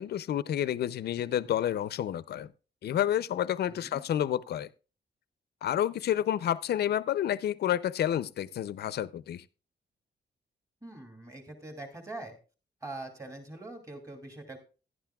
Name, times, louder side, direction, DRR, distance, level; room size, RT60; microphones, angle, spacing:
voice 1, 0.0-2.5 2.8-4.7 5.6-9.4, left 11 dB, 65° left, 0.5 m, -29 dB
voice 2, 3.7-4.0 10.8-12.4 12.8-14.6, right 2 dB, 20° right, 2.5 m, -43 dB
16.0 x 11.0 x 2.3 m
wide cardioid pair, 170°, 18 cm